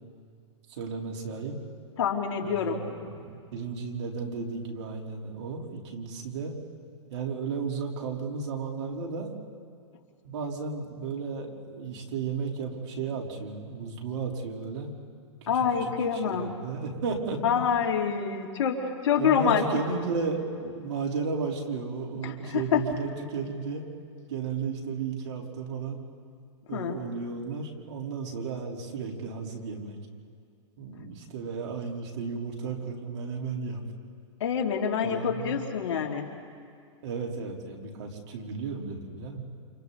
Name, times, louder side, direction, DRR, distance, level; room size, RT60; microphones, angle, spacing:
voice 1, 0.7-1.6 2.4-6.6 7.1-9.4 10.2-14.9 15.4-15.5 16.1-17.4 19.2-23.8 24.3-26.0 26.7-30.0 30.8-33.8 35.0-35.6 37.0-39.4, right 5 dB, 65° right, 0 dB, 3.9 m, -34 dB
voice 2, 2.0-2.8 15.5-16.5 17.4-19.6 22.2-22.8 26.7-27.0 34.4-36.3, left 7 dB, 70° left, 1 dB, 3.2 m, -26 dB
29.5 x 28.5 x 4.1 m, 2.3 s
hypercardioid pair, 140°, 15 cm